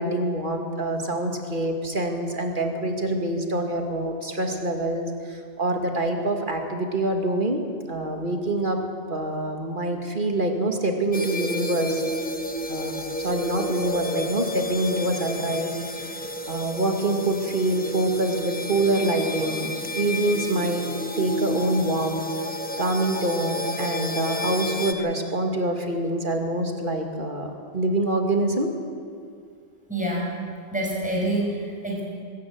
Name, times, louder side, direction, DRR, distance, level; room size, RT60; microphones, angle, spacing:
voice 1, 0.0-8.8 9.1-12.0 12.7-16.2 16.5-20.8 21.2-22.2 22.8-28.7, right 1 dB, 50° right, 3 dB, 2.5 m, -26 dB
sound 1, 11.1-24.9, left 1 dB, 10° left, 1.2 m, -31 dB
voice 2, 29.9-30.3 30.7-32.0, right 1 dB, 5° right, -3 dB, 5.8 m, -26 dB
22.0 x 14.0 x 9.5 m, 2.2 s
omnidirectional pair, 1.1 m